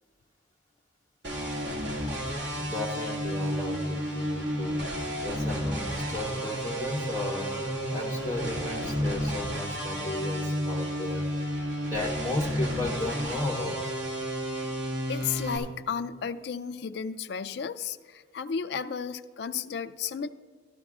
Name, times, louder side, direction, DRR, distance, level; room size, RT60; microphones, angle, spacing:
sound 1, 1.2-15.6, equal, 65° right, 2.1 m, -32 dB
voice 1, 1.6-1.9 15.1-20.3, left 6 dB, 55° left, 11 dB, 0.4 m, -33 dB
voice 2, 2.5-4.8 5.2-7.5 7.9-11.3 11.8-13.8, left 2 dB, 15° right, -5 dB, 1.6 m, -34 dB
13.5 x 12.0 x 2.4 m, 1.5 s
head